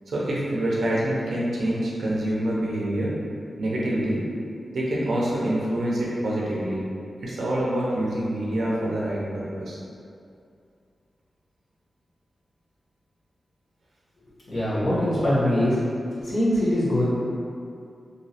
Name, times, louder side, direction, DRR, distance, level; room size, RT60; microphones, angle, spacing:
voice 1, 0.1-3.1 3.6-4.2 4.7-6.8 7.2-9.8, right 1 dB, 80° right, -5 dB, 0.5 m, -26 dB
voice 2, 14.5-15.8 16.2-17.0, left 1 dB, 60° left, -11 dB, 1.0 m, -22 dB
2.6 x 2.0 x 2.7 m, 2.4 s
wide cardioid pair, 135°, 0 cm